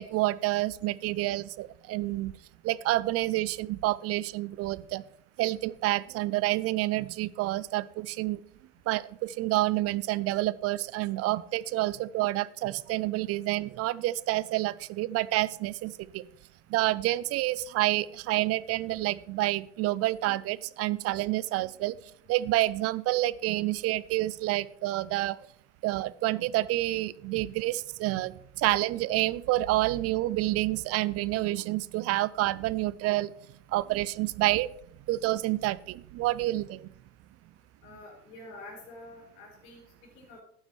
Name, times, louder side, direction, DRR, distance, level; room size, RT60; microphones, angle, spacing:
voice 1, 0.0-2.3 2.6-5.0 5.4-8.4 8.9-16.2 16.7-21.9 22.3-25.4 25.8-33.3 33.7-34.7 35.1-36.9, right 17 dB, 35° right, 19 dB, 0.4 m, -28 dB
voice 2, 37.8-40.4, left 2 dB, 65° left, -1 dB, 4.9 m, -48 dB
12.5 x 9.6 x 3.2 m, 0.65 s
hypercardioid pair, 100°, 45 cm